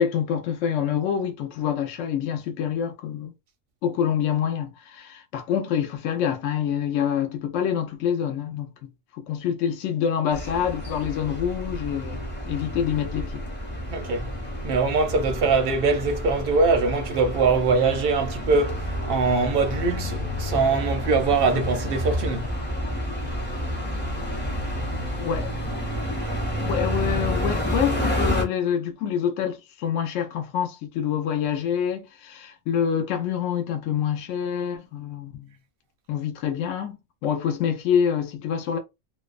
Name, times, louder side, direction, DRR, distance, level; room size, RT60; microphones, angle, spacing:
voice 1, 0.0-3.3 3.8-8.7 9.1-13.4 25.2-25.5 26.6-35.5 36.1-38.8, left 8 dB, 75° left, 0.9 m, -26 dB
sound 1, 10.3-28.4, equal, 15° left, 0.4 m, -29 dB
voice 2, 13.9-14.3 14.6-22.5, right 4 dB, 60° right, 0.6 m, -23 dB
2.6 x 2.1 x 2.4 m
omnidirectional pair, 1.3 m